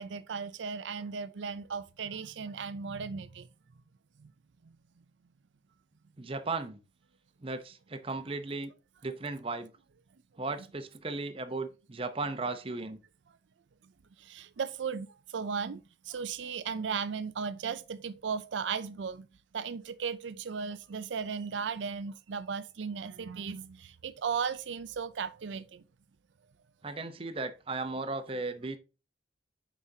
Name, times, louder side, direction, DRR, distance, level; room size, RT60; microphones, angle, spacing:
voice 1, 0.0-3.5 4.2-4.3 14.2-15.1 15.3-15.8 16.1-19.3 19.5-25.8, right 6 dB, 85° right, 0.5 m, -36 dB
voice 2, 6.2-6.8 7.4-8.7 9.0-9.7 10.4-13.0 26.8-28.8, right 3 dB, 30° right, 0.7 m, -36 dB
7.3 x 5.1 x 2.8 m
head